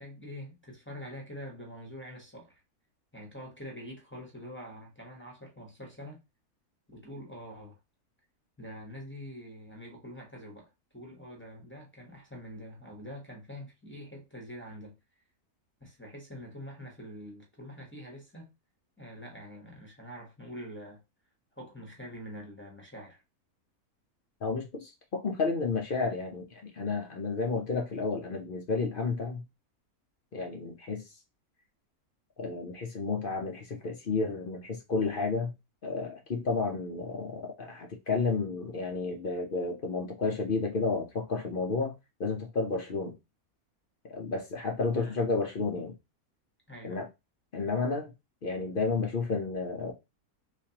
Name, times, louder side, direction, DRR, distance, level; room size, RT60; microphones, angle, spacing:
voice 1, 0.0-2.6 3.1-6.2 6.9-7.8 8.6-14.9 15.8-18.5 19.0-21.0 21.6-23.2 44.9-45.2 46.7-47.0, equal, 10° left, 0.9 m, -45 dB
voice 2, 24.4-29.4 30.3-31.1 32.4-35.5 35.8-41.9 42.2-43.2 44.1-46.0 46.8-47.1 47.5-48.1 48.4-49.9, left 4 dB, 55° left, 0.6 m, -31 dB
3.4 x 3.2 x 2.8 m
omnidirectional pair, 1.6 m